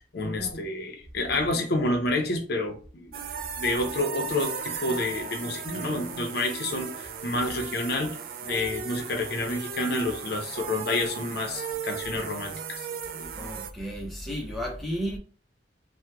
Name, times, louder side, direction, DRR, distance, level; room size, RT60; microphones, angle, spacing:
voice 1, 0.1-3.1 3.6-8.2 8.4-12.8 13.2-13.3, left 2 dB, 60° left, 0.6 m, -29 dB
sound 1, 3.1-13.7, right 6 dB, 50° right, 0.3 m, -36 dB
voice 2, 13.4-15.2, equal, ahead, 0.7 m, -33 dB
2.8 x 2.1 x 3.4 m
head